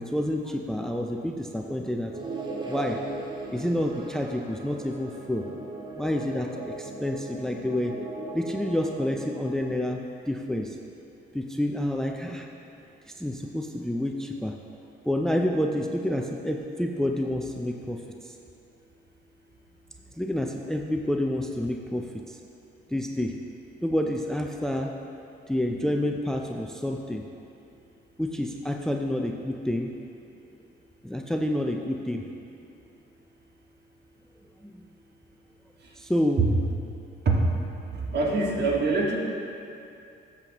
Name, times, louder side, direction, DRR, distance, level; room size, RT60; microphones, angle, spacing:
voice 1, 0.0-2.1 2.7-3.0 3.5-5.4 6.0-7.9 8.3-10.0 10.3-10.8 11.3-12.5 13.2-14.5 15.1-18.0 20.2-22.1 22.9-23.4 23.8-24.9 25.5-27.2 28.2-29.9 31.0-32.2 34.6-34.7 36.0-36.5, left 1 dB, 5° left, 3 dB, 0.5 m, -28 dB
sound 1, 2.1-9.7, right 2 dB, 20° right, 1.1 m, -38 dB
voice 2, 37.9-39.2, right 3 dB, 55° right, -3 dB, 1.8 m, -24 dB
12.5 x 7.2 x 3.0 m, 2.6 s
cardioid pair, 90°, 20 cm